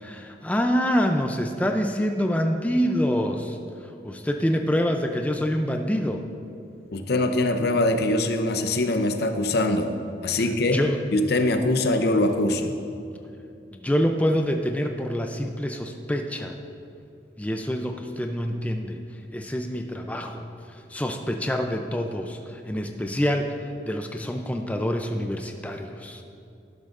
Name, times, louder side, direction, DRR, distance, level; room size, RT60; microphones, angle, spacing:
voice 1, 0.0-3.6 4.0-6.2 10.7-11.0 13.7-16.5 17.4-19.0 19.3-20.4 20.9-23.5 23.9-26.2, equal, 10° left, 4 dB, 0.4 m, -26 dB
voice 2, 6.9-9.9 10.2-10.8 11.1-12.7, left 2 dB, 60° left, 6 dB, 0.7 m, -23 dB
11.5 x 11.5 x 2.5 m, 2.7 s
head